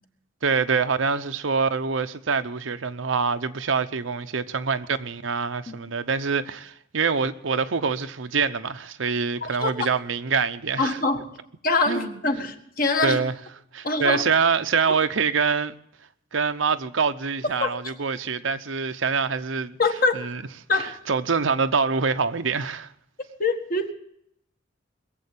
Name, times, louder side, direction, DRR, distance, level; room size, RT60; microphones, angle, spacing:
voice 1, 0.4-11.0 11.9-12.1 13.0-13.3 13.7-15.7 16.3-19.8 20.1-20.4 20.7-22.9, right 5 dB, 85° right, 0.8 m, -25 dB
voice 2, 10.8-11.4 11.6-13.2 13.8-14.2 17.6-17.7 19.8-20.2 20.7-20.9 23.4-23.9, left 3 dB, 50° left, 1.6 m, -24 dB
21.5 x 7.8 x 8.4 m
head